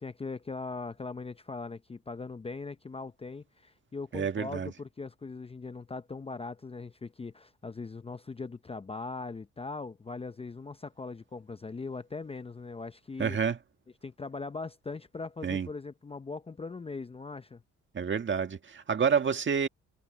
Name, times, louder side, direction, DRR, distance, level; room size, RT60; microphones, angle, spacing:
voice 1, 0.0-13.4 14.0-17.6, left 4 dB, 20° left, 0.6 m, -40 dB
voice 2, 4.1-4.7 13.2-13.6 15.4-15.7 17.9-19.7, right 6 dB, 40° right, 1.7 m, -28 dB
cardioid pair, 90°, 30 cm